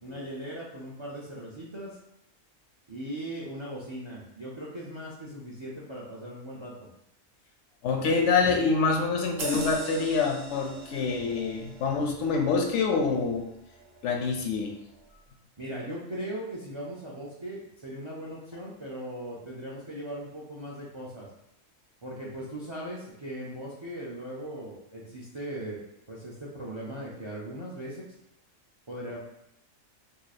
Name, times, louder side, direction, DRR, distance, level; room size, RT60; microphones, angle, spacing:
voice 1, 0.0-2.0 2.9-6.9 15.6-21.3 22.0-25.8 26.1-28.0 28.9-29.2, right 1 dB, 45° right, -4 dB, 0.4 m, -39 dB
voice 2, 7.8-13.5 14.0-14.7, left 4 dB, 70° left, 2 dB, 0.8 m, -26 dB
sound 1, 9.4-14.4 14.8-15.0, right 5 dB, 60° right, 0.7 m, -41 dB
2.8 x 2.7 x 4.1 m, 0.79 s
omnidirectional pair, 1.4 m